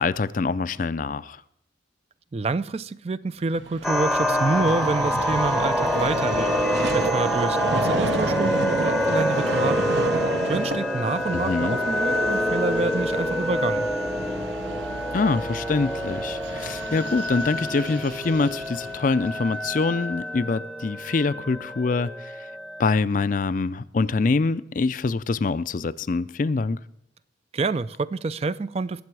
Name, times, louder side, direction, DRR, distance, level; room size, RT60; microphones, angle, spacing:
voice 1, 0.0-1.4 11.3-11.8 15.1-22.5 22.8-26.8, left 4 dB, 45° left, 0.4 m, -25 dB
voice 2, 2.3-6.5 6.9-9.9 10.5-13.9 27.5-29.0, right 3 dB, 35° right, 0.4 m, -27 dB
Vehicle, 3.5-19.8, right 3 dB, 75° right, 0.9 m, -31 dB
sound 1, 3.8-23.0, left 1 dB, ahead, 0.7 m, -27 dB
20.5 x 7.7 x 4.7 m
head